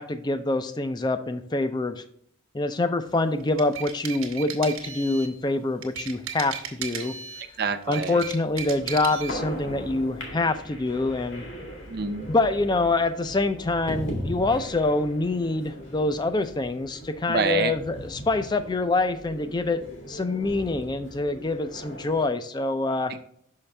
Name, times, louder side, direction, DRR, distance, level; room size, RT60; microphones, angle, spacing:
voice 1, 0.0-2.0 2.5-7.1 7.9-11.4 12.3-19.8 20.1-23.1, left 2 dB, 20° left, 10 dB, 0.4 m, -25 dB
sound 1, 3.4-5.4 5.8-7.5 7.8-9.4, right 7 dB, 85° right, 1.1 m, -36 dB
voice 2, 7.6-8.2 11.9-12.3 17.3-17.7 23.1-23.2, right 4 dB, 50° right, 10 dB, 0.6 m, -26 dB
sound 2, 8.7-22.3, equal, 65° left, 1.9 m, -39 dB
6.0 x 5.7 x 3.3 m, 0.69 s
head